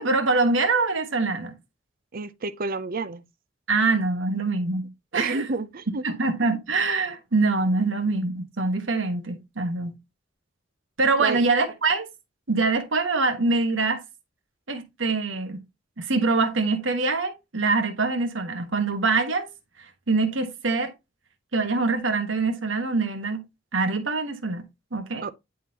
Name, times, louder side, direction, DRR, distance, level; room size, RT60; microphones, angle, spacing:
voice 1, 0.0-1.5 3.7-5.4 6.0-10.0 11.0-12.1 12.5-14.0 14.7-15.6 16.0-19.5 20.1-20.9 21.5-23.4 23.7-25.3, right 3 dB, 70° right, 1.3 m, -24 dB
voice 2, 2.1-3.2 5.1-6.1 11.2-11.4 25.2-25.3, right 3 dB, 50° right, 0.6 m, -29 dB
10.0 x 3.7 x 2.9 m
head